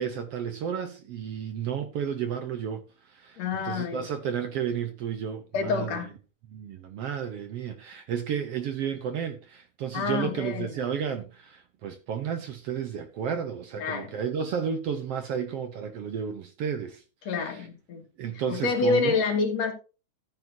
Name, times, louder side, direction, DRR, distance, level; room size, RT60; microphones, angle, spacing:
voice 1, 0.0-6.0 6.5-17.0 17.3-17.7 18.2-19.2, right 8 dB, 65° right, 1.7 m, -32 dB
voice 2, 3.4-4.1 5.5-6.1 9.9-10.7 13.8-14.1 17.3-18.0 18.5-19.7, left 4 dB, 60° left, 2.9 m, -27 dB
14.5 x 8.1 x 2.7 m
omnidirectional pair, 3.5 m